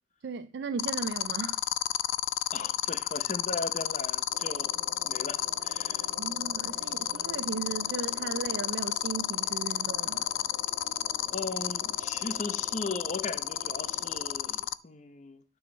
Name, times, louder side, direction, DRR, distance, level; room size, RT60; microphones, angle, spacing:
voice 1, 0.2-1.6 6.2-10.3, right 5 dB, 60° right, 0.4 m, -36 dB
sound 1, 0.8-14.7, left 13 dB, 85° left, 0.3 m, -30 dB
voice 2, 2.5-4.7 5.0-6.1 11.3-15.4, left 3 dB, 40° left, 0.8 m, -38 dB
sound 2, 4.3-14.3, left 1 dB, 55° left, 2.1 m, -48 dB
6.2 x 6.1 x 5.2 m
head